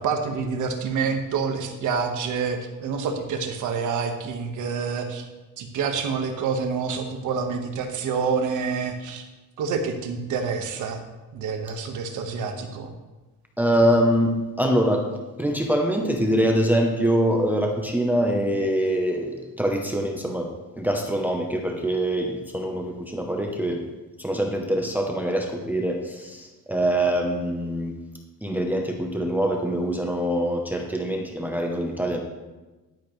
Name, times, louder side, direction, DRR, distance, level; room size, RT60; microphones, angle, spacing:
voice 1, 0.0-5.2 5.6-9.2 9.6-11.0 11.3-12.9, right 5 dB, 60° right, 4 dB, 1.4 m, -27 dB
voice 2, 13.6-15.1 15.4-20.5 20.8-23.8 24.2-28.0 28.4-32.2, equal, 5° right, 1 dB, 0.7 m, -24 dB
11.5 x 10.0 x 3.2 m, 1.2 s
cardioid pair, 165°, 34 cm